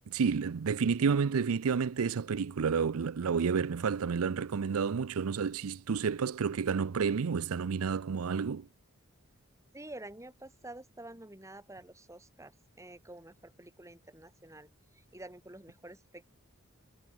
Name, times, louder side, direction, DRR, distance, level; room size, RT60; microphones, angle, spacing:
voice 1, 0.1-8.7, right 6 dB, 80° right, 0.5 m, -30 dB
voice 2, 9.7-16.3, right 1 dB, 15° right, 3.7 m, -49 dB
head